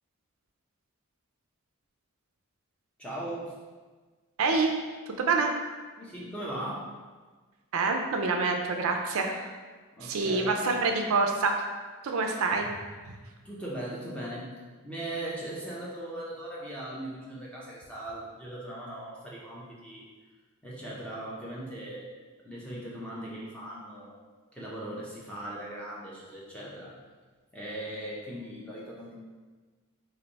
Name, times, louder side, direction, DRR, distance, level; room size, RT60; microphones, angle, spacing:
voice 1, 3.0-3.5 6.0-7.0 10.0-10.6 13.4-14.5 14.8-20.1 20.6-22.1 22.4-24.2 24.5-27.0 27.5-29.2, right 1 dB, 5° left, -6 dB, 0.6 m, -39 dB
voice 2, 4.4-4.7 5.2-5.5 7.7-9.5 10.0-11.6 12.0-12.7, right 4 dB, 65° right, 3 dB, 0.4 m, -26 dB
3.3 x 2.6 x 4.0 m, 1.4 s
head